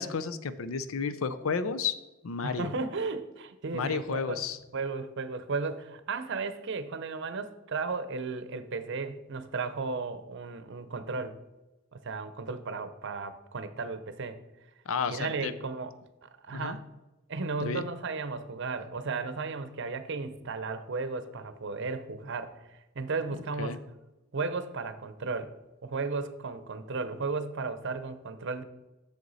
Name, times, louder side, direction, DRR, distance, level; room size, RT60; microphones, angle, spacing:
voice 1, 0.0-2.0 2.2-2.7 3.7-4.6 14.9-15.5 16.5-16.8 17.6-17.8 23.6-23.8, left 5 dB, 85° left, 13 dB, 0.6 m, -32 dB
voice 2, 2.4-4.5 4.7-11.4 11.9-14.4 15.1-15.9 16.2-16.9 17.3-23.8 24.3-25.5 25.8-28.6, right 4 dB, 60° right, 11 dB, 0.7 m, -35 dB
7.9 x 6.6 x 4.1 m, 1.0 s
head